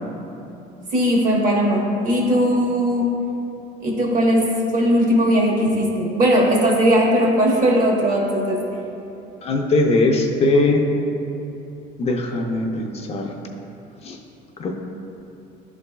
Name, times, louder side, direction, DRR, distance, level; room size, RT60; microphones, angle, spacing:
voice 1, 0.9-3.1 3.8-8.6, equal, 50° right, -1 dB, 1.3 m, -18 dB
voice 2, 9.4-10.8 12.0-13.3 14.0-14.2 14.6-14.7, left 2 dB, 35° left, 1 dB, 0.6 m, -20 dB
11.0 x 4.0 x 2.3 m, 2.9 s
cardioid pair, 120°, 18 cm